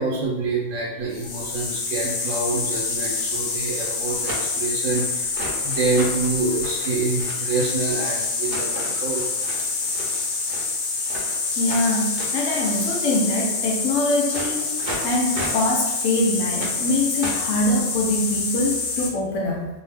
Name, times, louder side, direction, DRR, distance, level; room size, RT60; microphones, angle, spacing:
voice 1, 0.0-5.3 5.6-9.3, right 3 dB, 85° right, -4 dB, 1.0 m, -26 dB
sound 1, 1.1-19.1, left 4 dB, 65° left, 0.5 m, -27 dB
sound 2, 3.0-13.9 14.2-15.7 16.0-17.5, right 1 dB, 55° right, 0.7 m, -37 dB
voice 2, 11.6-19.7, left 2 dB, 90° left, -1 dB, 1.0 m, -24 dB
2.7 x 2.0 x 3.3 m, 1.0 s
omnidirectional pair, 1.3 m